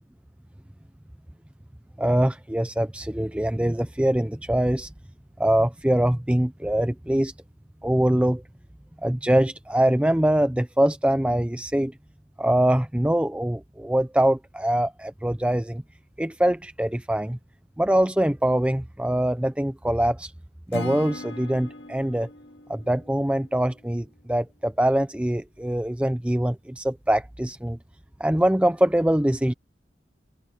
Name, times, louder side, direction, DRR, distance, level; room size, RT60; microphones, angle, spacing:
voice 1, 2.0-4.9 5.4-7.3 7.8-8.4 9.0-11.9 12.4-15.8 16.2-17.4 17.8-20.3 20.7-22.3 22.7-27.8 28.2-29.5, right 1 dB, 5° right, 0.5 m, -23 dB
Acoustic guitar / Strum, 20.7-23.9, left 2 dB, 75° left, 2.0 m, -39 dB
head